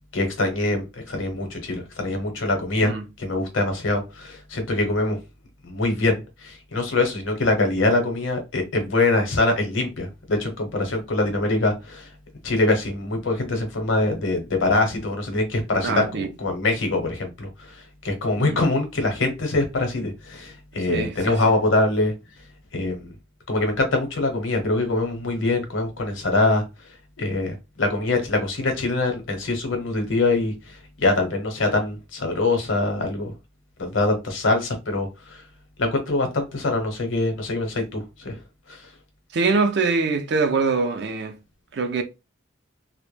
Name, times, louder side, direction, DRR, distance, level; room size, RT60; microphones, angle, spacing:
voice 1, 0.1-5.2 5.6-12.1 12.4-22.1 22.7-23.1 23.5-26.6 27.2-33.3 33.8-35.4 35.8-38.4 38.7-38.8, left 2 dB, 75° left, 0.8 m, -24 dB
voice 2, 15.8-16.3 18.4-18.6 20.9-21.4 39.3-41.4 41.7-42.0, right 4 dB, 55° right, 0.4 m, -23 dB
2.1 x 2.0 x 3.1 m
head